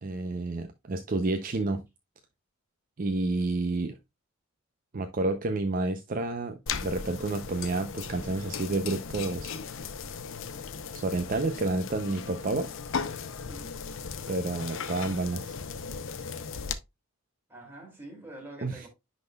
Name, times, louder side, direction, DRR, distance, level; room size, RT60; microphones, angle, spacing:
voice 1, 0.0-1.8 3.0-4.0 4.9-9.6 10.9-12.7 14.3-15.6 18.6-18.9, right 2 dB, 40° right, 0.5 m, -30 dB
sound 1, 6.7-16.7, left 6 dB, 65° left, 0.6 m, -37 dB
voice 2, 13.5-13.8 17.5-18.9, right 1 dB, 10° right, 2.4 m, -46 dB
10.5 x 4.0 x 2.2 m
head